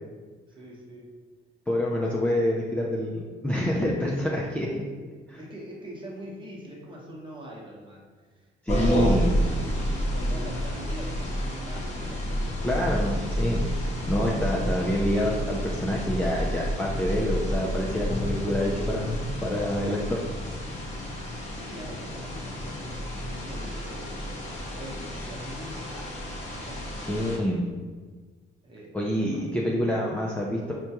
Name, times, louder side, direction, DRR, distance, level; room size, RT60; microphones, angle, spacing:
voice 1, 0.6-1.1 5.4-9.2 10.1-13.1 21.5-27.5 28.6-28.9 29.3-29.4, right 1 dB, 25° right, -4 dB, 1.0 m, -43 dB
voice 2, 1.7-4.8 5.3-5.4 8.6-9.3 12.6-20.2 27.0-27.6 28.9-30.7, equal, 5° left, -4 dB, 0.4 m, -27 dB
sound 1, 8.7-27.4, equal, 35° left, 0.9 m, -30 dB
4.3 x 2.2 x 2.8 m, 1.4 s
cardioid pair, 90°, 20 cm